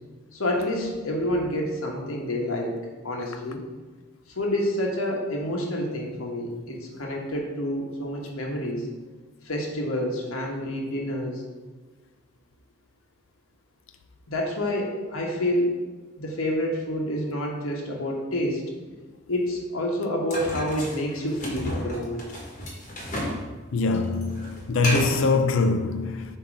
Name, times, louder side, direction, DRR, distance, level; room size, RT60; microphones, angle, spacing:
voice 1, 0.3-2.7 3.0-3.6 4.3-8.9 9.4-11.4 14.3-15.7 16.2-18.6 19.3-22.2, left 1 dB, 90° left, 1.1 m, -28 dB
sound 1, 20.3-23.4 23.7-25.3, equal, 35° left, 1.2 m, -32 dB
voice 2, 23.7-26.3, left 3 dB, 70° left, 0.5 m, -23 dB
7.3 x 2.9 x 4.9 m
head